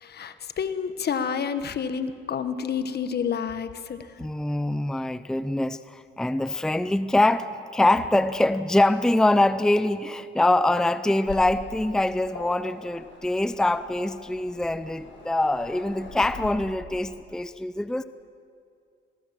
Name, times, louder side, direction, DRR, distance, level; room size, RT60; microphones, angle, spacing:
voice 1, 0.0-4.1, left 7 dB, 55° left, 11 dB, 1.4 m, -29 dB
voice 2, 4.2-18.0, left 1 dB, 5° left, 13 dB, 0.6 m, -24 dB
Waves surf, 11.2-16.5, left 3 dB, 70° left, 6.2 m, -43 dB
27.0 x 18.5 x 7.7 m, 2.4 s
cardioid pair, 90°, 20 cm